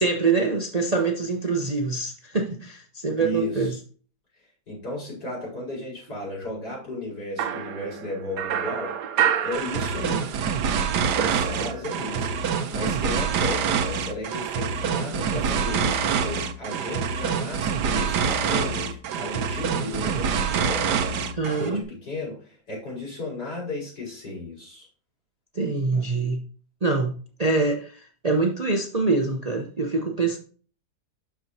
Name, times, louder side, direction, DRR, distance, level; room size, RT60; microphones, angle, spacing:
voice 1, 0.0-3.7 21.4-21.8 25.5-26.4 26.8-30.4, right 3 dB, 35° right, 0.6 m, -25 dB
voice 2, 3.2-3.8 4.7-8.9 9.4-10.3 11.1-21.0 21.6-24.9, left 2 dB, 75° left, 4.9 m, -34 dB
sound 1, 7.4-10.4 10.7-12.2, right 9 dB, 70° right, 1.0 m, -28 dB
sound 2, 9.5-21.7, right 6 dB, 90° right, 1.3 m, -26 dB
12.0 x 4.7 x 2.7 m
omnidirectional pair, 1.7 m